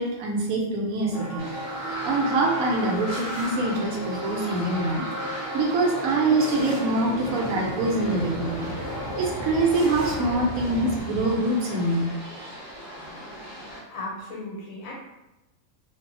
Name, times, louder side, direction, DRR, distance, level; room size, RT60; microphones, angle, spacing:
voice 1, 0.0-1.4 2.0-8.7 9.1-12.5, right 2 dB, 85° right, -1 dB, 1.1 m, -25 dB
sound 1, 1.1-10.4, right 1 dB, 40° right, 0.6 m, -36 dB
sound 2, 1.4-13.8, equal, ahead, 1.1 m, -40 dB
sound 3, 1.6-11.0, equal, 50° left, 0.9 m, -36 dB
voice 2, 13.6-14.9, left 2 dB, 80° left, -3 dB, 1.2 m, -37 dB
2.6 x 2.3 x 2.5 m, 0.93 s
omnidirectional pair, 1.4 m